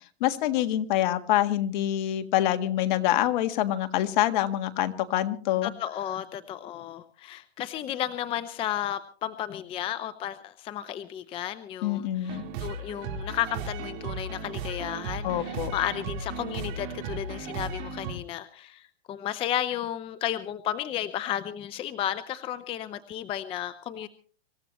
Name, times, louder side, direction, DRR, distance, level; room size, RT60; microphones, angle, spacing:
voice 1, 0.2-5.7 11.8-12.4 15.2-15.7, left 13 dB, 50° left, 9 dB, 1.6 m, -26 dB
voice 2, 5.6-24.1, left 11 dB, 15° left, 13 dB, 0.6 m, -33 dB
sound 1, 12.2-18.1, right 4 dB, 45° right, 4.1 m, -36 dB
25.5 x 15.0 x 3.1 m, 0.42 s
hypercardioid pair, 145°, 32 cm